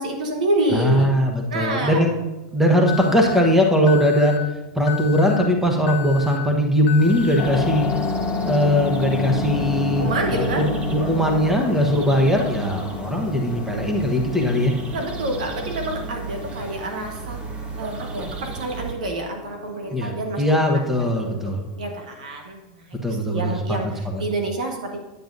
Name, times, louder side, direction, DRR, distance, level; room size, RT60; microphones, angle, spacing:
voice 1, 0.0-1.1 1.5-2.0 10.0-10.7 11.7-11.8 14.9-17.4 17.8-20.4 21.0-21.4 21.8-25.0, right 2 dB, 80° right, 3 dB, 1.3 m, -28 dB
voice 2, 0.7-2.1 2.5-4.3 4.7-7.9 8.4-14.7 19.9-20.1 20.4-21.6 23.0-23.8 24.0-24.2, equal, 5° right, 2 dB, 1.2 m, -20 dB
Alarm, 2.9-3.4 3.9-4.4 4.9-5.4 5.9-6.4 6.9-7.4, left 10 dB, 55° left, 0.8 m, -33 dB
sound 1, 7.0-18.9, right 4 dB, 30° right, 1.0 m, -34 dB
sound 2, 7.4-22.3, left 3 dB, 35° left, 0.5 m, -31 dB
9.4 x 8.7 x 2.7 m, 1.0 s
hypercardioid pair, 105°, 4 cm